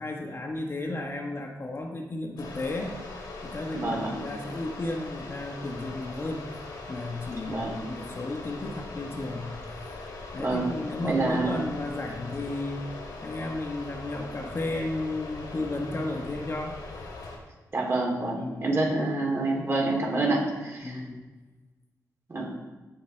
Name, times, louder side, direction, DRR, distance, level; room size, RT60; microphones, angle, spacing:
voice 1, 0.0-3.0 3.4-6.5 6.9-9.5 10.3-12.9 13.2-16.8 18.3-18.7 20.8-21.3, left 2 dB, 40° left, 2 dB, 1.2 m, -33 dB
sound 1, 2.4-17.4, left 3 dB, 85° left, 2.1 m, -41 dB
voice 2, 11.0-11.6 17.7-21.0 22.3-22.5, right 2 dB, 40° right, -2 dB, 3.3 m, -27 dB
15.0 x 5.2 x 4.4 m, 1.2 s
cardioid pair, 90°, 7 cm